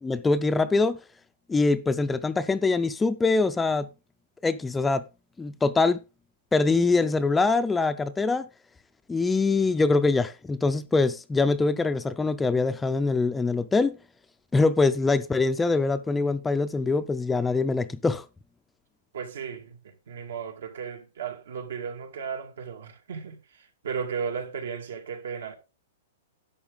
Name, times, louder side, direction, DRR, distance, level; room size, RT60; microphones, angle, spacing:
voice 1, 0.0-1.0 1.5-3.9 4.4-5.0 5.4-6.0 6.5-8.5 9.1-14.0 14.5-18.2, left 3 dB, 10° left, 0.4 m, -23 dB
voice 2, 19.1-25.6, right 6 dB, 80° right, 2.1 m, -35 dB
11.5 x 7.2 x 3.7 m
hypercardioid pair, 160°, 0 cm